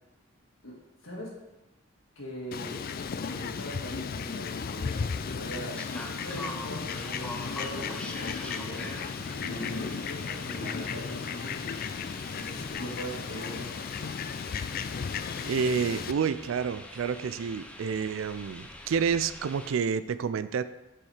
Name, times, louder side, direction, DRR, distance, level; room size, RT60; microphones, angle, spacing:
voice 1, 1.0-1.4 2.2-2.9 3.2-9.0 9.4-11.7 12.3-13.8, equal, 70° left, -3 dB, 2.1 m, -40 dB
Fowl, 2.5-16.1, left 6 dB, 45° left, 0.3 m, -35 dB
sound 1, 5.7-19.7, left 1 dB, 5° left, 0.6 m, -44 dB
voice 2, 15.5-20.6, right 6 dB, 75° right, 13 dB, 0.4 m, -29 dB
7.2 x 4.6 x 4.9 m, 0.99 s
head